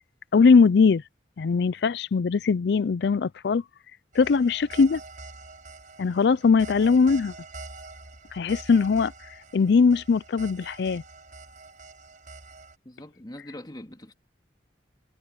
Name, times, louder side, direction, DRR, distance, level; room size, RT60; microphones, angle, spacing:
voice 1, 0.3-1.0 1.4-3.6 4.2-5.0 6.0-7.3 8.3-9.1 9.5-11.0, left 5 dB, 65° left, 0.4 m, -20 dB
sound 1, 4.1-12.7, right 3 dB, 50° right, 6.4 m, -45 dB
voice 2, 12.8-14.1, left 1 dB, 25° left, 2.5 m, -42 dB
head